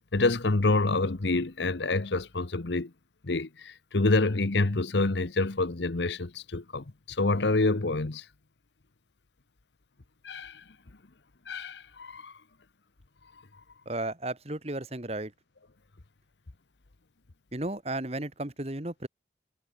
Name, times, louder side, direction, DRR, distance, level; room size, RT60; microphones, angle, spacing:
voice 1, 0.1-2.9 3.2-8.2 10.2-10.6 11.5-12.3, left 2 dB, 75° left, 1.0 m, -27 dB
voice 2, 13.9-15.3 17.5-19.1, right 2 dB, 35° right, 1.8 m, -34 dB
head